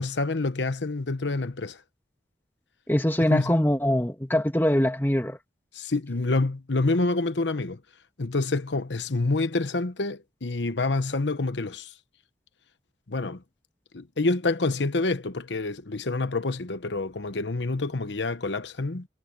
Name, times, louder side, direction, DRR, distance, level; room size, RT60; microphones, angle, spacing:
voice 1, 0.0-1.8 3.2-3.6 5.7-7.8 8.2-11.9 13.1-13.4 13.9-19.1, left 3 dB, 90° left, 1.1 m, -27 dB
voice 2, 2.9-5.4, left 1 dB, 10° left, 1.6 m, -23 dB
head